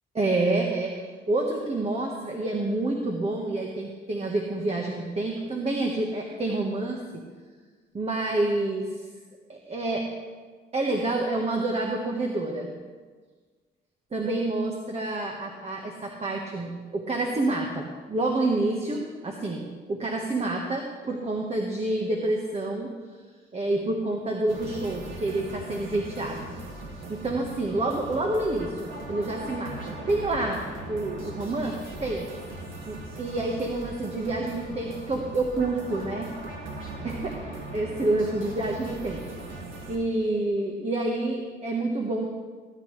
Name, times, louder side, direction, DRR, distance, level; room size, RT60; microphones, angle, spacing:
voice 1, 0.1-0.9 1.3-7.0 7.9-8.9 9.5-10.1 10.7-12.7 14.1-22.9 23.5-26.5 27.1-30.6 30.9-32.3 32.8-36.3 37.0-37.3 37.7-39.2 39.9-42.3, right 2 dB, 30° right, 0 dB, 1.4 m, -28 dB
sound 1, 24.5-40.0, right 2 dB, 80° right, 2.0 m, -39 dB
17.5 x 10.0 x 3.3 m, 1.5 s
cardioid pair, 90°, 20 cm